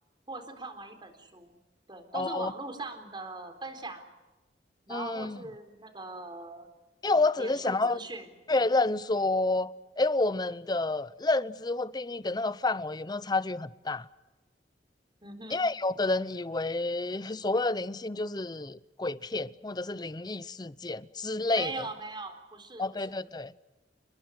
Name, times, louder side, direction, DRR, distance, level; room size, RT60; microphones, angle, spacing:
voice 1, 0.3-1.6 1.9-4.1 4.9-6.7 7.4-8.3 15.2-15.7 21.5-23.2, right 2 dB, 25° right, 3.9 m, -41 dB
voice 2, 2.1-2.5 4.9-5.4 7.0-8.0 8.5-14.1 15.5-21.9 22.8-23.5, left 2 dB, 25° left, 0.7 m, -29 dB
29.5 x 21.5 x 6.4 m
head